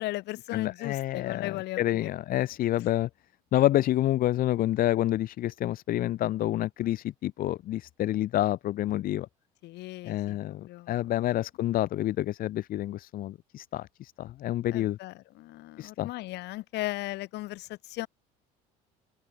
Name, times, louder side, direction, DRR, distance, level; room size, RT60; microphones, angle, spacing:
voice 1, 0.0-2.1 9.6-11.1 14.7-18.1, left 18 dB, 65° left, 2.9 m, -37 dB
voice 2, 0.5-3.1 3.5-9.3 10.0-15.0 15.8-16.1, left 14 dB, 50° left, 0.6 m, -28 dB
supercardioid pair, 80°, 19 cm